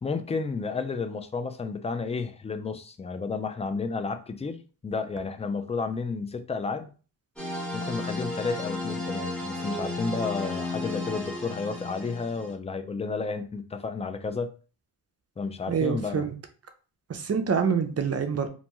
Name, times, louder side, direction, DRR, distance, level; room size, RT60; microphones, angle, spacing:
voice 1, 0.0-6.9 7.7-14.5 15.4-16.3, left 4 dB, 15° left, 0.3 m, -32 dB
sound 1, 7.4-12.5, left 2 dB, ahead, 0.9 m, -33 dB
voice 2, 15.7-16.3 17.1-18.5, right 6 dB, 40° right, 0.5 m, -26 dB
2.6 x 2.2 x 2.9 m
cardioid pair, 65°, 40 cm